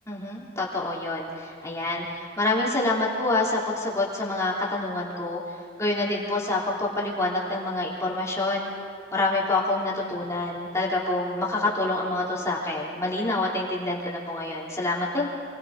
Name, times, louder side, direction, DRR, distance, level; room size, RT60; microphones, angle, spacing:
voice 1, 0.1-5.4 5.8-8.7 9.1-15.3, left 2 dB, 15° left, -4 dB, 3.3 m, -27 dB
28.0 x 21.5 x 5.0 m, 2.1 s
head